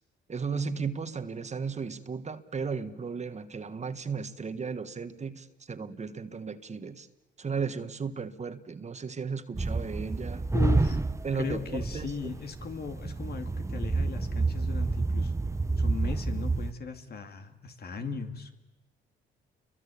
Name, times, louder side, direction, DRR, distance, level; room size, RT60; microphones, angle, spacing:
voice 1, 0.3-7.1 7.4-10.5 11.2-12.3, right 5 dB, 35° right, 10 dB, 1.5 m, -35 dB
sound 1, 9.5-16.7, right 3 dB, 15° right, 0.9 m, -29 dB
voice 2, 10.5-11.0 11.4-15.3 15.8-18.5, left 5 dB, 50° left, 7 dB, 2.5 m, -37 dB
29.0 x 23.0 x 8.6 m, 1.1 s
cardioid pair, 90°, 20 cm